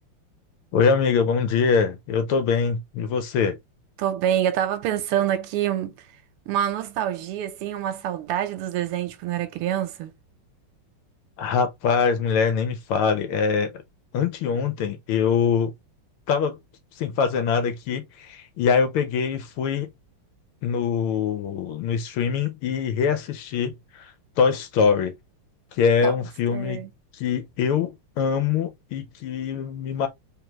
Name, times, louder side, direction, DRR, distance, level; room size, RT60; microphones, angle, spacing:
voice 1, 0.7-3.6 11.4-13.7 14.1-15.7 16.3-16.6 17.0-19.9 20.6-25.1 25.7-26.8 27.1-30.1, left 6 dB, 75° left, 1.7 m, -23 dB
voice 2, 4.0-5.9 6.5-10.1 26.0-26.1 26.5-26.9, right 11 dB, 85° right, 1.6 m, -26 dB
3.6 x 3.3 x 2.9 m
omnidirectional pair, 2.4 m